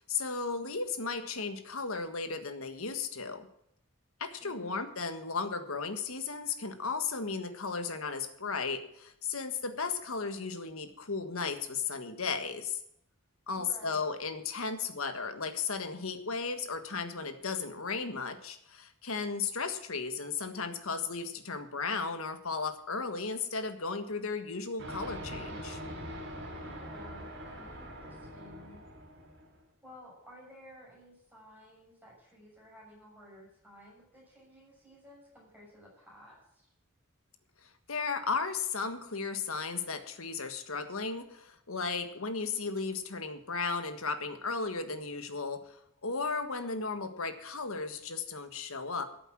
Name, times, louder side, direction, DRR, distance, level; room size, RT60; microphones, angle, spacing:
voice 1, 0.0-3.5 4.2-12.8 13.5-25.8 37.6-49.0, left 4 dB, 85° left, 8 dB, 1.5 m, -35 dB
voice 2, 4.4-4.8 13.5-14.1 26.6-28.8 29.8-36.7, equal, 10° right, -4 dB, 6.9 m, -54 dB
sound 1, 24.8-29.5, equal, 55° right, 4.9 m, -43 dB
13.5 x 7.9 x 7.5 m, 0.75 s
head